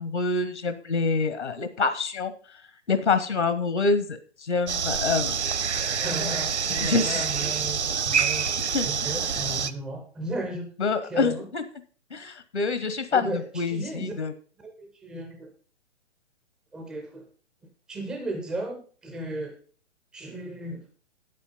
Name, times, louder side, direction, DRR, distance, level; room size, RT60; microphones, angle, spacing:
voice 1, 0.0-2.3 2.9-5.4 6.8-7.3 8.7-8.9 10.8-11.6 12.1-14.3, left 4 dB, 75° left, 11 dB, 1.2 m, -26 dB
sound 1, 4.7-9.7, right 6 dB, 75° right, 0.9 m, -27 dB
voice 2, 6.0-8.5 8.9-10.7 11.0-11.5 13.1-14.1 14.6-15.5 16.7-17.2 17.9-19.6 20.1-20.8, right 2 dB, ahead, 4 dB, 0.4 m, -35 dB
8.8 x 8.4 x 5.3 m, 0.43 s
figure-of-eight pair, 120°, 34 cm